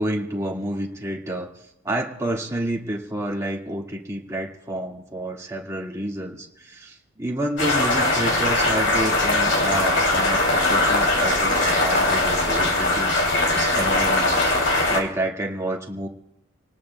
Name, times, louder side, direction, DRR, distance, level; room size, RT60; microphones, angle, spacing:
voice 1, 0.0-1.5 1.8-16.1, right 1 dB, 15° right, -2 dB, 1.8 m, -29 dB
sound 1, 7.6-15.0, left 2 dB, 65° left, 2.8 m, -20 dB
27.5 x 19.0 x 2.2 m, 0.85 s
head